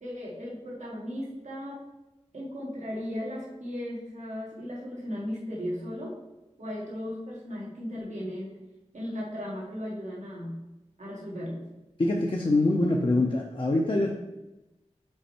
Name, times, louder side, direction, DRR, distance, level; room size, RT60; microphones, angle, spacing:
voice 1, 0.0-1.8 2.3-6.1 6.6-8.5 8.9-10.6 11.0-11.7, equal, 85° right, -5 dB, 1.7 m, -36 dB
voice 2, 12.0-14.1, left 2 dB, 45° left, -1 dB, 0.6 m, -24 dB
5.5 x 4.4 x 4.3 m, 1.0 s
wide cardioid pair, 70°, 12 cm